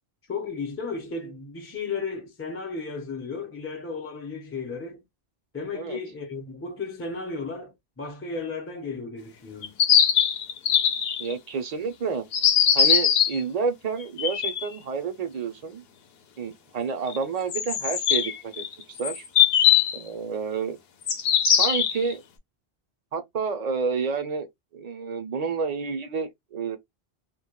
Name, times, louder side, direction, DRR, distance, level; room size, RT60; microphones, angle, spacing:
voice 1, 0.3-5.0 5.5-9.8, left 4 dB, 20° left, 0.4 m, -34 dB
sound 1, 9.6-11.3 12.3-13.4 14.0-14.6 17.1-17.2 17.5-20.0 21.1-22.1, left 9 dB, 70° left, 0.8 m, -21 dB
voice 2, 11.2-12.3 12.7-15.8 16.4-19.2 19.9-20.8 21.5-22.2 23.1-24.5 24.7-26.8, right 5 dB, 50° right, 0.5 m, -29 dB
2.2 x 2.1 x 2.9 m
omnidirectional pair, 1.1 m